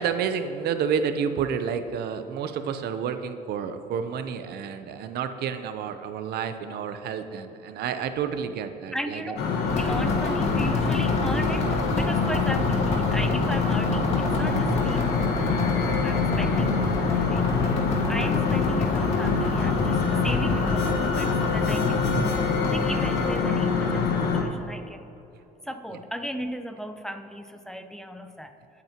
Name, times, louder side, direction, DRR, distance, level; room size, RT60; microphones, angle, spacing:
voice 1, 0.0-9.4, right 7 dB, 70° right, 9 dB, 0.8 m, -30 dB
voice 2, 8.9-22.2 22.6-25.1 25.6-28.8, equal, 5° left, 7 dB, 0.7 m, -36 dB
sound 1, 9.4-24.4, left 4 dB, 75° left, 1.6 m, -25 dB
sound 2, 9.7-23.4, left 2 dB, 40° left, 2.2 m, -30 dB
22.5 x 8.6 x 3.0 m, 2.9 s
cardioid pair, 110°, 17 cm